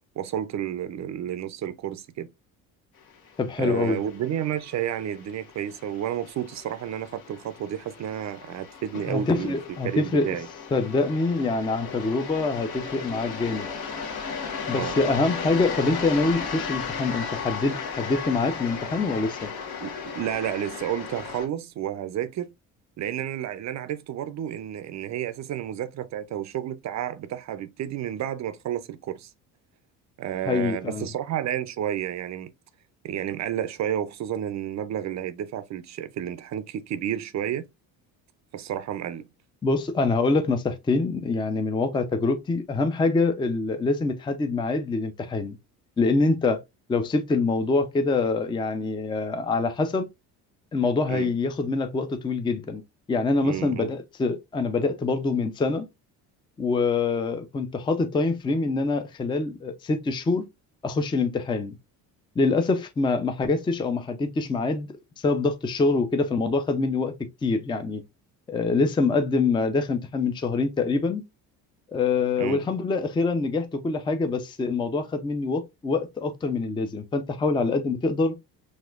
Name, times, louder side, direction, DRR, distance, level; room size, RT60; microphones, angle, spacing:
voice 1, 0.2-2.3 3.6-9.6 9.8-10.5 14.8-15.0 19.8-22.5 23.0-29.3 30.2-32.5 33.0-37.6 38.5-39.3 51.1-51.3 53.4-53.9 72.4-72.6, right 10 dB, 40° right, 0.5 m, -31 dB
sound 1, 3.1-21.5, left 6 dB, 60° left, 1.1 m, -36 dB
voice 2, 3.4-4.0 9.1-10.3 10.7-13.7 14.7-19.5 30.5-31.1 39.6-45.6 46.0-46.6 46.9-50.1 50.7-52.8 53.1-55.9 56.6-60.5 60.8-61.8 62.4-64.9 65.2-67.1 67.4-68.0 68.5-71.2 71.9-78.4, left 3 dB, 10° left, 0.4 m, -25 dB
4.2 x 2.4 x 2.4 m
supercardioid pair, 70°, 42 cm